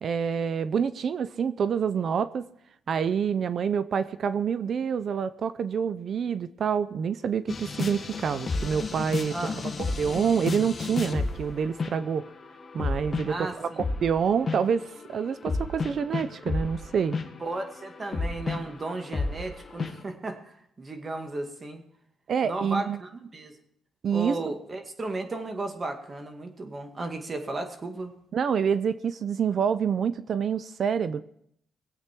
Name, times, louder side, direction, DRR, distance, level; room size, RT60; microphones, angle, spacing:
voice 1, 0.0-2.4 2.9-9.3 9.8-12.3 12.7-17.2 22.3-23.0 24.0-24.4 28.3-31.2, right 7 dB, 55° right, 14 dB, 0.5 m, -27 dB
sound 1, 7.5-11.5 11.8-12.2 12.6-14.1 14.5-14.7 15.5-19.5 19.8-19.9, left 3 dB, 35° left, 1.4 m, -31 dB
voice 2, 9.3-9.8 13.3-13.8 17.4-21.8 22.4-23.6 24.1-28.1, right 2 dB, 30° right, 5 dB, 2.0 m, -35 dB
21.5 x 8.2 x 4.6 m, 0.71 s
cardioid pair, 90°, 0 cm